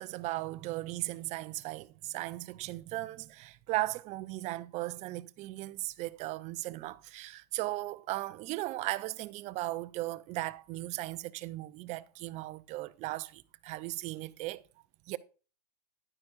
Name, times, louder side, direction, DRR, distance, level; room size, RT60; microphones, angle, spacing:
voice 1, 0.0-14.6 15.1-15.2, right 18 dB, 35° right, 0.5 m, -37 dB
11.0 x 9.6 x 2.6 m
hypercardioid pair, 115°, 21 cm